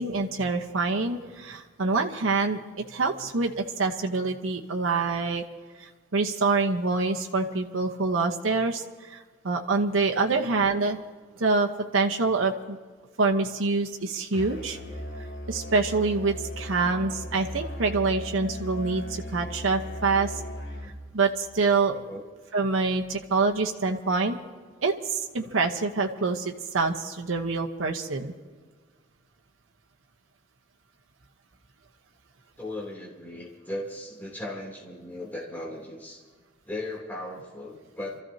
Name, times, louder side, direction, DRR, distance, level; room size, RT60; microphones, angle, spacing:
voice 1, 0.0-2.6 2.9-5.4 5.8-11.0 11.4-12.8 13.2-14.8 15.5-20.4 21.1-21.9 22.5-24.4 24.8-28.3, right 3 dB, 90° right, 3 dB, 1.0 m, -26 dB
Musical instrument, 14.3-21.1, equal, 70° left, 1.9 m, -37 dB
voice 2, 21.9-22.2 32.6-36.2 36.6-38.2, left 1 dB, 10° left, -4 dB, 3.0 m, -37 dB
29.5 x 14.0 x 2.8 m, 1.5 s
head